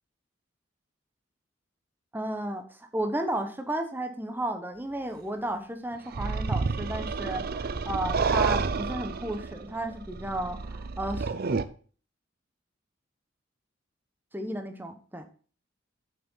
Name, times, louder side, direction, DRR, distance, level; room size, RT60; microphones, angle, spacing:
voice 1, 2.1-2.6 2.9-11.3 14.3-15.2, right 1 dB, 10° right, 7 dB, 1.0 m, -33 dB
sound 1, 6.1-11.6, right 4 dB, 50° right, 0.5 m, -30 dB
7.2 x 6.1 x 5.6 m, 0.41 s
head